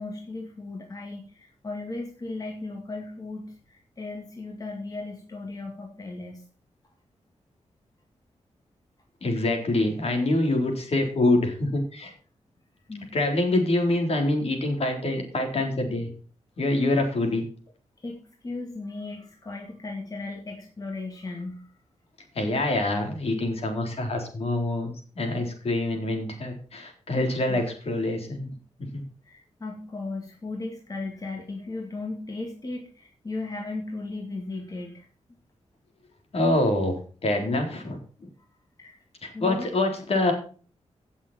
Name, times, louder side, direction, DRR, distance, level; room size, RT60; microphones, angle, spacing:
voice 1, 0.0-6.4 12.9-13.1 18.0-21.7 27.5-27.6 29.2-35.1 38.8-39.0 39.3-39.7, left 3 dB, 30° left, 1 dB, 2.3 m, -36 dB
voice 2, 9.2-12.1 13.1-16.1 16.6-17.4 22.3-28.5 28.9-29.0 36.3-38.0 39.2-40.3, left 2 dB, 60° left, 3 dB, 4.0 m, -25 dB
17.0 x 7.2 x 4.4 m, 0.40 s
wide cardioid pair, 165°, 12 cm